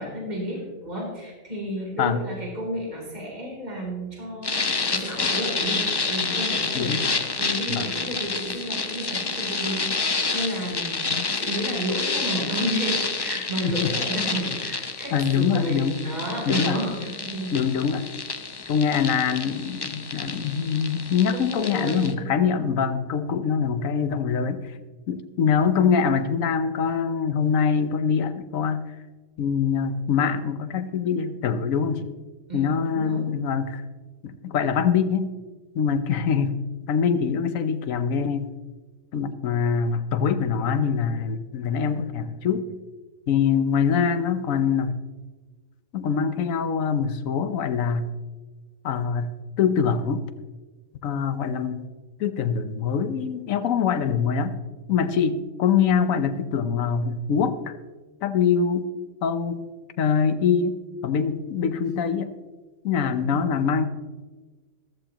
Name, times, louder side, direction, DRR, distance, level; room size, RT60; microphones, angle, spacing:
voice 1, 0.0-17.5 21.3-22.1 22.4-22.6 32.5-33.2 63.1-63.4, equal, 30° right, -3 dB, 3.5 m, -32 dB
sound 1, 4.4-22.1, left 4 dB, 30° left, 0.5 m, -29 dB
voice 2, 15.1-16.0 16.5-16.8 17.5-18.1 18.7-24.8 25.1-28.9 29.4-32.1 32.5-33.8 34.2-35.3 35.7-36.6 36.9-38.5 39.1-42.7 43.3-45.0 45.9-48.1 48.8-50.3 51.0-51.9 52.2-54.6 54.9-57.7 58.2-58.9 59.2-59.6 60.0-62.3 62.8-63.9, left 6 dB, 80° left, 11 dB, 1.2 m, -24 dB
14.5 x 13.5 x 2.9 m, 1.3 s
omnidirectional pair, 1.4 m